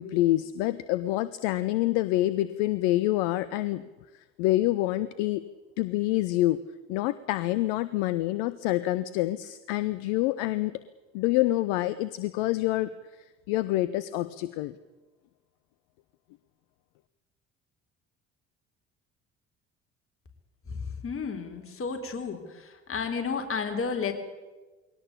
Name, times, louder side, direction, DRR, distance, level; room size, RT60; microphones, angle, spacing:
voice 1, 0.0-3.8 4.4-5.4 5.8-6.6 6.9-10.7 11.1-12.9 13.5-14.7, left 16 dB, 60° left, 16 dB, 0.8 m, -26 dB
voice 2, 20.7-24.1, left 5 dB, 35° left, 5 dB, 4.0 m, -32 dB
22.0 x 18.0 x 8.5 m, 1.2 s
figure-of-eight pair, 55°, 37 cm